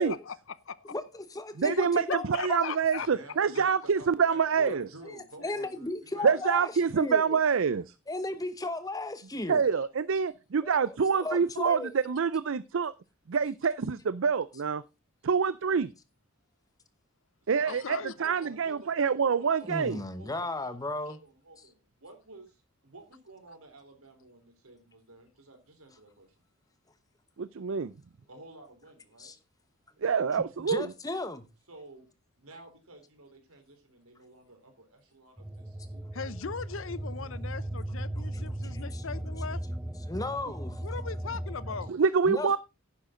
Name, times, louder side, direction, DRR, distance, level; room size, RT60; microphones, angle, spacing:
voice 1, 0.0-0.9 1.7-1.8 2.1-3.1 5.4-5.5 17.6-18.2 36.1-39.6 40.8-41.9, left 5 dB, 65° left, 0.7 m, -39 dB
voice 2, 0.9-2.2 2.5-2.7 4.6-4.7 5.0-7.4 8.1-9.6 10.6-11.9 19.6-21.2 29.2-29.4 30.7-31.5 38.9-39.0 40.1-40.8 42.3-42.6, left 2 dB, 15° left, 1.0 m, -35 dB
voice 3, 1.6-4.9 6.2-7.9 9.5-12.9 13.3-14.8 15.2-15.9 17.5-20.0 27.4-27.9 30.0-30.9 41.9-42.6, right 6 dB, 65° right, 0.5 m, -26 dB
voice 4, 3.0-7.1 17.7-22.6 22.8-26.3 28.3-29.3 31.7-32.1 32.4-36.0, right 2 dB, 85° right, 3.8 m, -51 dB
sound 1, 35.4-41.9, right 1 dB, 5° right, 0.5 m, -37 dB
10.5 x 10.0 x 3.8 m
head